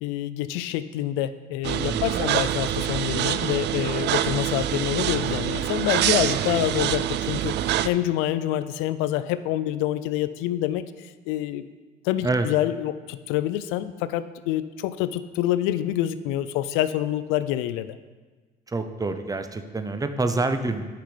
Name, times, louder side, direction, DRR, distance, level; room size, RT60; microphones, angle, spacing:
voice 1, 0.0-11.7 12.0-18.0, left 13 dB, 85° left, 13 dB, 0.5 m, -27 dB
sound 1, 1.6-7.9, right 12 dB, 60° right, 0.4 m, -25 dB
voice 2, 1.9-2.3 12.2-12.5 18.7-20.8, right 3 dB, 15° right, 9 dB, 0.7 m, -27 dB
8.5 x 5.9 x 5.0 m, 1.3 s
supercardioid pair, 85°, 21 cm